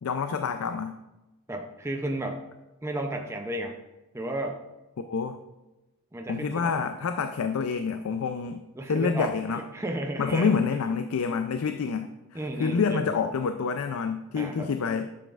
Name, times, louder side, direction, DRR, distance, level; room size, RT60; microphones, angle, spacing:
voice 1, 0.0-1.0 5.0-5.4 6.3-8.6 8.9-9.6 10.2-15.1, left 5 dB, 75° left, 8 dB, 0.4 m, -28 dB
voice 2, 1.5-2.4 2.8-3.8 4.1-4.6 6.1-6.8 8.8-10.8 12.3-13.1 14.4-14.7, right 1 dB, 10° right, 2 dB, 0.5 m, -33 dB
11.0 x 7.0 x 2.4 m, 1.0 s
head